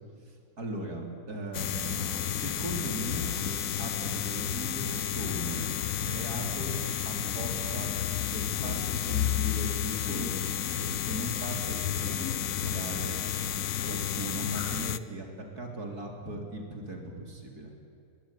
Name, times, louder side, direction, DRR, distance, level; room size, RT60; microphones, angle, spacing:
voice 1, 0.6-5.7 6.0-6.8 7.0-7.9 8.3-13.2 13.8-17.7, right 2 dB, 70° right, 2 dB, 4.0 m, -38 dB
sound 1, 1.5-15.0, left 10 dB, 65° left, 1.1 m, -31 dB
23.5 x 21.0 x 10.0 m, 2.5 s
omnidirectional pair, 1.7 m